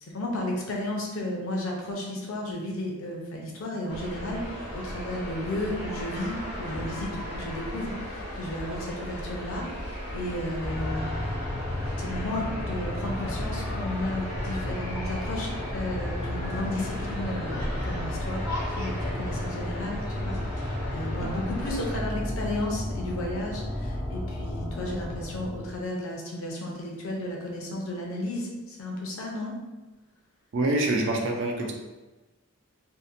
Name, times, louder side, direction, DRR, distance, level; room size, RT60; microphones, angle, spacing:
voice 1, 0.0-11.4 12.0-18.4 18.7-29.6, left 1 dB, 65° left, -1 dB, 0.5 m, -33 dB
sound 1, 3.9-22.0, equal, 85° right, 1.0 m, -36 dB
sound 2, 10.6-25.8, left 1 dB, 15° left, 0.4 m, -33 dB
voice 2, 30.5-31.7, right 2 dB, 55° right, 2 dB, 0.4 m, -26 dB
2.7 x 2.1 x 2.4 m, 1.2 s
head